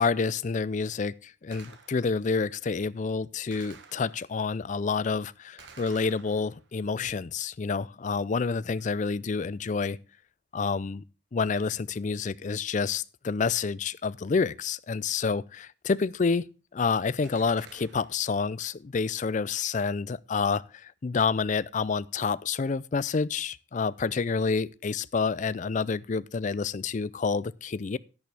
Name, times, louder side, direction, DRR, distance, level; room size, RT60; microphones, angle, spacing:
voice 1, 0.0-10.0 10.5-11.0 11.3-16.5 16.7-28.0, left 5 dB, 40° left, 0.4 m, -28 dB
Gunshot gunfire, 1.5-2.3 3.5-4.5 5.6-6.8 17.2-18.3, right 5 dB, 65° right, 1.6 m, -52 dB
11.0 x 10.5 x 3.4 m
head